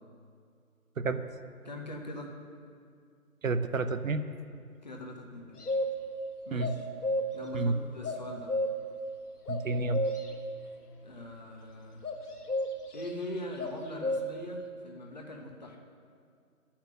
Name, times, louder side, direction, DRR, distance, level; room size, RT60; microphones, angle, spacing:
voice 1, 1.6-2.3 4.8-5.6 6.4-6.9 7.3-8.5 11.0-12.0 12.9-15.8, left 1 dB, 30° left, 1 dB, 0.9 m, -42 dB
voice 2, 3.4-4.2 6.5-6.7 7.5-7.7 9.5-10.0, right 3 dB, 60° right, 10 dB, 0.7 m, -29 dB
sound 1, 5.6-6.2 6.6-7.5 8.0-9.0 9.5-10.4 12.0-13.1 13.6-14.5, left 1 dB, 80° left, 1.5 m, -32 dB
11.5 x 5.8 x 7.5 m, 2.3 s
figure-of-eight pair, 160°, 46 cm